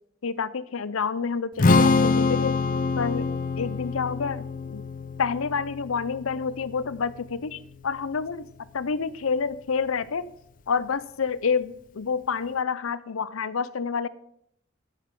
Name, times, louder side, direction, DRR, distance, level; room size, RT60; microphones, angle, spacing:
voice 1, 0.2-2.6 3.0-4.8 5.2-8.4 8.7-10.3 10.7-14.1, left 5 dB, 85° left, 17 dB, 0.6 m, -28 dB
Strum, 1.6-7.9, left 3 dB, 40° left, 0.5 m, -25 dB
10.0 x 10.0 x 5.3 m, 0.71 s
head